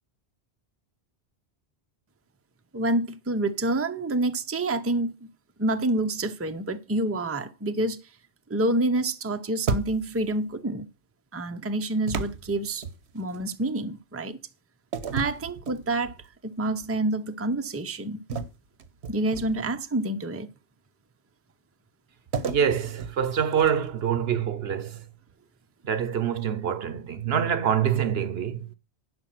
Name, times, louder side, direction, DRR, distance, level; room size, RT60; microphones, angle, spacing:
voice 1, 2.7-5.3 5.6-8.0 8.5-10.9 11.3-12.8 13.1-14.4 15.1-16.2 16.4-18.2 19.1-20.5, right 2 dB, 15° right, 0.6 m, -27 dB
sound 1, 9.7-10.3 12.1-13.4 14.9-16.3 16.7-17.0 18.3-19.8 22.3-24.0, right 5 dB, 85° right, 1.3 m, -33 dB
voice 2, 22.5-25.0 25.8-28.7, right 8 dB, 70° right, 1.0 m, -26 dB
11.0 x 5.2 x 7.7 m
omnidirectional pair, 1.1 m